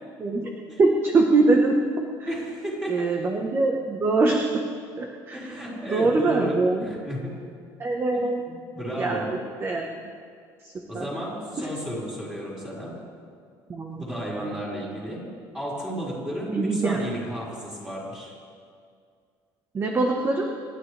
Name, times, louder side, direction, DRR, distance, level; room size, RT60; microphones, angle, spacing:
voice 1, 0.8-1.7 2.2-2.3 2.9-4.6 5.0-5.4 5.9-6.8 7.8-8.4 9.0-9.9 10.6-11.1 11.6-11.7 13.7-14.0 14.4-14.6 16.5-17.0 19.7-20.5, right 3 dB, 25° right, 1 dB, 1.2 m, -23 dB
voice 2, 2.3-3.1 5.3-7.4 8.1-9.3 10.9-12.9 13.9-15.2 15.5-18.3, equal, 5° right, -7 dB, 5.1 m, -33 dB
27.5 x 12.0 x 3.4 m, 2.2 s
cardioid pair, 150°, 9 cm